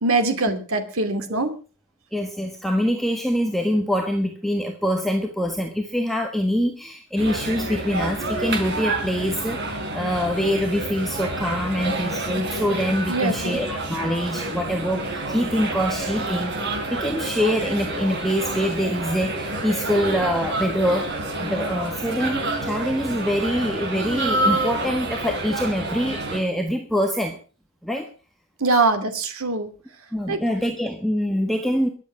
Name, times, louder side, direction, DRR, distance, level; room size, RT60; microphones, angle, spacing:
voice 1, 0.0-1.5 13.1-13.6 28.6-29.7 30.3-30.4, right 3 dB, 75° right, 8 dB, 2.6 m, -22 dB
voice 2, 2.1-27.4 27.8-28.1 30.1-31.9, equal, ahead, 2 dB, 1.4 m, -25 dB
sound 1, 7.2-26.4, right 2 dB, 50° right, 4.2 m, -28 dB
22.0 x 8.3 x 6.0 m, 0.37 s
head